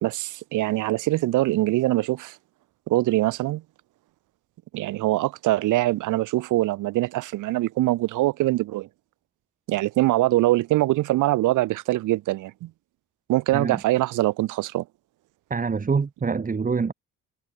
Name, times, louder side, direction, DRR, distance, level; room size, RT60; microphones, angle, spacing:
voice 1, 0.0-2.4 2.9-3.6 4.7-8.9 9.7-12.7 13.3-14.8, right 17 dB, 85° right, 1.0 m, -23 dB
voice 2, 15.5-16.9, right 5 dB, 30° right, 1.5 m, -25 dB
cardioid pair, 90°, 30 cm